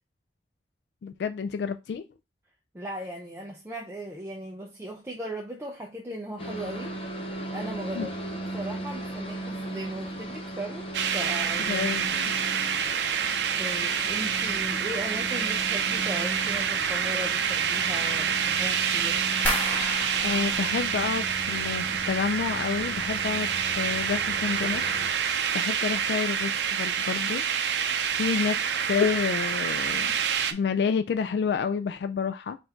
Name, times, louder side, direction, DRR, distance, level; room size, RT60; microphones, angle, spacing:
voice 1, 1.0-2.0 8.0-8.1 11.7-12.3 20.2-23.5 23.8-24.8 25.5-27.4 28.1-28.6 28.9-30.1 30.5-32.6, left 6 dB, 70° left, 0.3 m, -29 dB
voice 2, 2.7-7.0 7.5-8.1 8.5-10.9 11.1-11.9 13.0-19.2, right 1 dB, 15° right, 0.5 m, -38 dB
sound 1, 6.4-25.1, right 1 dB, 30° left, 0.6 m, -38 dB
sound 2, 10.9-30.5, right 7 dB, 80° right, 0.5 m, -27 dB
sound 3, 19.4-22.3 22.6-23.3 23.7-24.1 24.5-24.6, equal, 10° left, 1.2 m, -34 dB
4.2 x 2.6 x 4.3 m
head